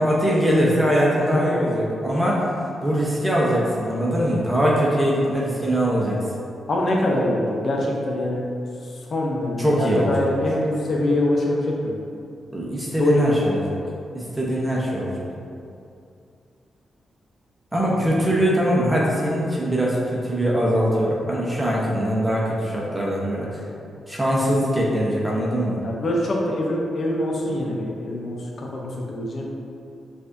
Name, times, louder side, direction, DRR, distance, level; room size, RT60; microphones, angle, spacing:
voice 1, 0.0-2.5 2.8-6.2 9.6-10.3 12.5-13.7 14.1-15.1 17.7-23.6 24.1-25.8, equal, 15° right, -5 dB, 0.8 m, -22 dB
voice 2, 1.1-1.5 6.7-8.4 8.8-12.0 13.0-13.6 17.9-18.1 25.8-29.5, left 1 dB, 60° left, -2 dB, 0.7 m, -24 dB
4.7 x 2.6 x 2.6 m, 2.5 s
cardioid pair, 60°, 0 cm